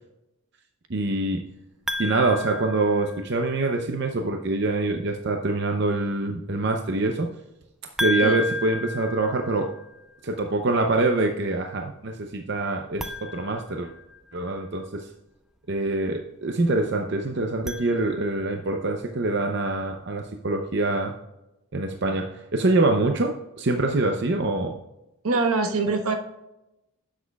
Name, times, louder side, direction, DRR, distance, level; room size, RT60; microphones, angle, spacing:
voice 1, 0.9-1.4 2.0-7.3 8.0-9.7 10.2-13.9 14.3-15.1 15.7-21.2 21.7-24.8, right 2 dB, 50° right, 3 dB, 0.6 m, -25 dB
sound 1, 1.9-3.6 8.0-10.0 12.9-14.5 17.4-18.6, left 2 dB, ahead, 0.3 m, -33 dB
voice 2, 25.2-26.2, right 3 dB, 75° right, 5 dB, 1.2 m, -23 dB
10.0 x 7.3 x 2.3 m, 0.91 s
head